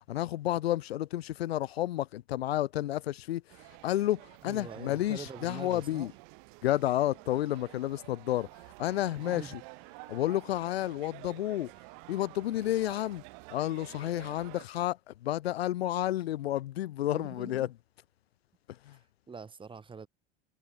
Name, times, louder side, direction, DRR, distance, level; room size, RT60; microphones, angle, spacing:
voice 1, 0.1-3.4 3.8-6.1 6.6-8.5 8.8-9.5 10.1-11.7 12.1-13.2 13.5-15.0 15.2-17.7 18.9-19.0, left 14 dB, 75° left, 0.6 m, -31 dB
sound 1, 3.5-14.7, right 40 dB or more, 55° right, 2.9 m, -50 dB
voice 2, 4.4-6.1 9.2-9.6 17.1-17.7 18.9-20.1, right 5 dB, 15° right, 1.4 m, -45 dB
figure-of-eight pair, 80°, 31 cm